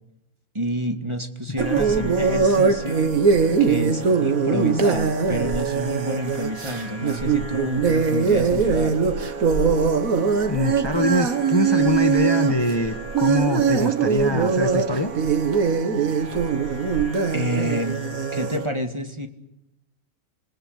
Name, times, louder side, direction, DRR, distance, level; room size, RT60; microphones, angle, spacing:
voice 1, 0.5-3.1 3.6-9.0 17.3-18.0 18.3-19.3, equal, 20° right, 6 dB, 2.1 m, -28 dB
sound 1, 1.6-18.7, right 5 dB, 70° right, 2.1 m, -22 dB
voice 2, 10.5-15.1, left 2 dB, 20° left, 7 dB, 1.4 m, -24 dB
28.0 x 21.0 x 8.2 m, 0.87 s
omnidirectional pair, 1.5 m